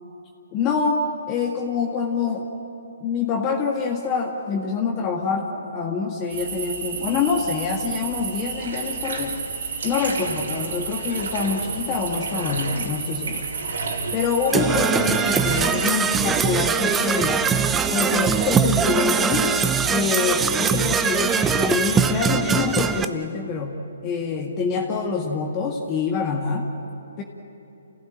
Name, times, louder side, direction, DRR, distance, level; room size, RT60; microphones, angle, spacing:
voice 1, 0.5-2.5 3.0-9.4 9.8-13.4 14.1-17.5 17.9-19.5 19.9-23.8 24.0-26.7 27.2-27.3, left 5 dB, 25° left, 0 dB, 1.8 m, -25 dB
sound 1, 6.3-22.1, right 5 dB, 60° right, 3.6 m, -32 dB
Bathtub (filling or washing), 8.5-20.2, right 3 dB, 75° right, 4.1 m, -35 dB
Percussion / Brass instrument, 14.5-23.0, right 6 dB, 10° right, 0.7 m, -22 dB
29.0 x 16.0 x 8.8 m, 3.0 s
hypercardioid pair, 145°, 0 cm